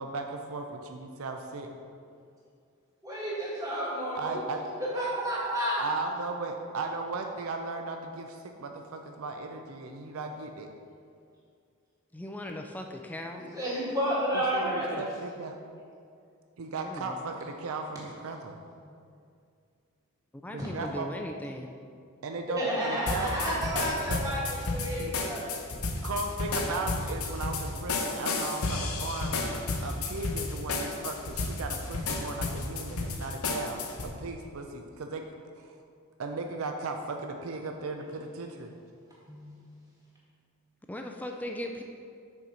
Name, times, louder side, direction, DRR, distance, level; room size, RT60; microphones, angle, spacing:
voice 1, 0.0-0.6 0.9-1.7 4.2-4.6 5.8-10.7 14.3-15.6 16.6-18.6 20.5-21.1 22.2-24.2 25.0-25.1 26.0-35.2 35.6-35.8 36.2-38.7, right 3 dB, 70° right, 4 dB, 0.5 m, -36 dB
voice 2, 3.0-4.4 4.8-5.8 13.4-15.0 20.6-20.7 22.6-25.5 39.3-39.6, equal, 15° right, -8 dB, 1.9 m, -31 dB
voice 3, 12.1-13.5 16.8-17.2 20.4-21.7 40.9-41.8, left 1 dB, 5° left, 3 dB, 0.3 m, -38 dB
sound 1, 23.1-34.1, left 3 dB, 85° left, 0.8 m, -32 dB
6.4 x 4.4 x 5.6 m, 2.3 s
head